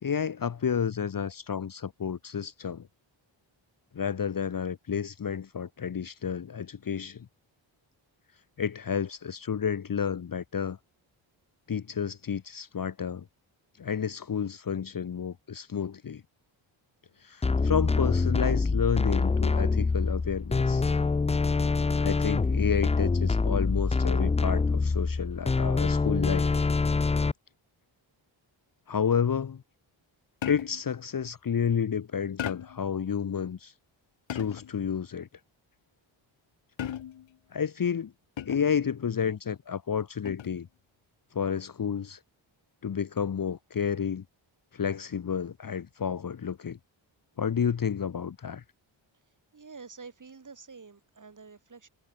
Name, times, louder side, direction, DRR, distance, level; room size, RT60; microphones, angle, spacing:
voice 1, 0.0-2.9 3.9-7.2 8.6-10.8 11.7-13.2 13.8-16.2 17.2-20.8 22.0-26.5 28.9-29.6 30.4-33.7 34.3-35.3 37.5-38.1 38.5-40.7 41.3-42.2 42.8-44.2 44.7-46.8 47.4-48.6, left 7 dB, 45° left, 1.2 m, -30 dB
sound 1, 17.4-27.3, left 4 dB, 15° left, 0.4 m, -25 dB
sound 2, 30.4-30.9 32.4-32.9 34.3-34.8 36.8-37.4 38.4-38.8 40.3-40.6, left 10 dB, 65° left, 1.4 m, -37 dB
voice 2, 49.5-51.9, right 4 dB, 40° right, 5.8 m, -48 dB
wide cardioid pair, 100°, 48 cm